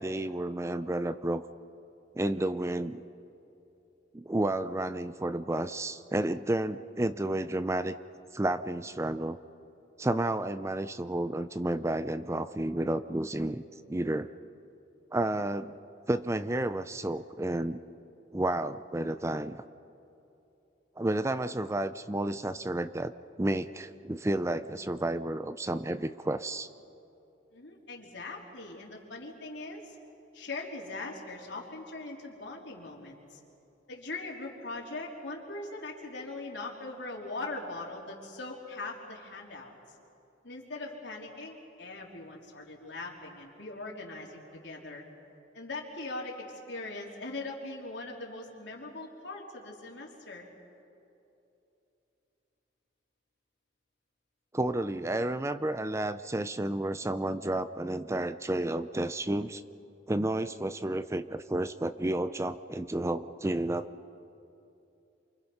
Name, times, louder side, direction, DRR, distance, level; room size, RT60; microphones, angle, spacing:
voice 1, 0.0-1.4 2.1-3.0 4.1-8.0 8.3-9.4 10.0-13.6 13.9-14.3 15.1-15.7 16.1-17.8 18.3-19.6 21.0-23.1 23.4-26.7 54.5-59.6 60.1-63.9, right 1 dB, 15° right, 12 dB, 0.5 m, -31 dB
voice 2, 27.5-30.0 30.3-33.4 33.9-39.7 40.4-45.0 45.5-50.5, left 2 dB, 80° left, -1 dB, 3.6 m, -41 dB
28.5 x 24.5 x 5.6 m, 2.9 s
head